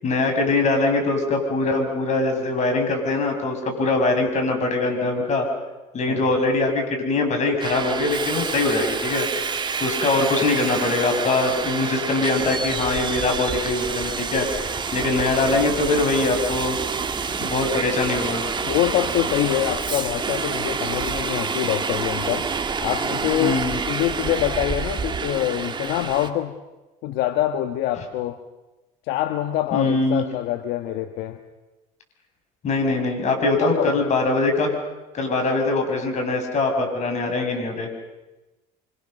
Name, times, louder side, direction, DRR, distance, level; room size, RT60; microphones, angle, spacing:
voice 1, 0.0-5.5 5.9-9.5 9.8-16.8 17.4-18.4 23.4-23.8 29.7-30.2 32.6-34.8 35.1-37.9, left 3 dB, 45° left, 4 dB, 6.9 m, -22 dB
Subway metro underground, 7.6-26.3, right 5 dB, 25° right, 2.1 m, -28 dB
voice 2, 18.6-22.5 22.8-26.5 27.0-28.4 29.1-31.4 33.6-34.0, left 13 dB, 70° left, 8 dB, 1.4 m, -25 dB
28.0 x 25.0 x 6.7 m, 1.1 s
supercardioid pair, 95°, 17 cm